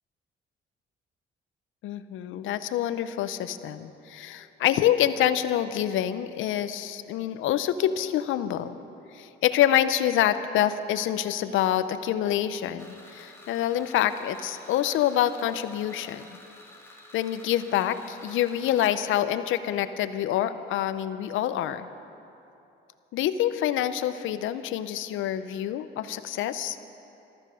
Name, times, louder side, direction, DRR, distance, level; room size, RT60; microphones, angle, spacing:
voice 1, 1.8-8.8 9.1-16.4 17.1-21.9 23.1-26.8, left 11 dB, 85° left, 12 dB, 0.7 m, -26 dB
sound 1, 12.8-19.0, left 2 dB, 10° left, 2.4 m, -50 dB
14.5 x 13.5 x 6.3 m, 2.8 s
cardioid pair, 90°, 20 cm